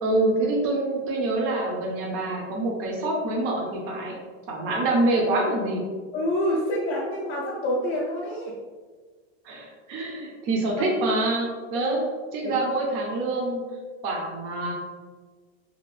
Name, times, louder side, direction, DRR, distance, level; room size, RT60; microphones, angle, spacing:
voice 1, 0.0-4.2 4.5-5.8 9.4-12.0 12.3-13.6 14.0-14.7, right 2 dB, 40° right, -1 dB, 0.6 m, -26 dB
voice 2, 6.1-8.5 11.7-12.0 12.4-12.7, equal, 30° left, -5 dB, 0.4 m, -27 dB
2.8 x 2.4 x 3.1 m, 1.4 s
supercardioid pair, 150°, 32 cm